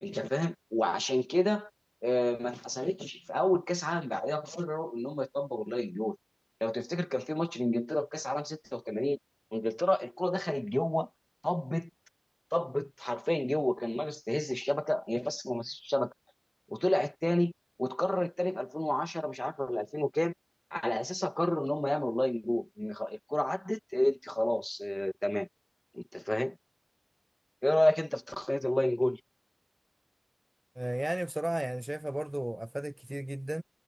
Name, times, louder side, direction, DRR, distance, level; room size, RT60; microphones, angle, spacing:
voice 1, 0.0-1.7 2.0-6.2 6.6-9.2 9.5-11.1 11.4-11.9 12.5-16.1 16.7-17.5 17.8-20.3 20.7-25.5 25.9-26.6 27.6-29.2, left 1 dB, 25° left, 1.6 m, -30 dB
voice 2, 30.8-33.6, right 1 dB, 25° right, 0.4 m, -34 dB
wide cardioid pair, 40°, 0 cm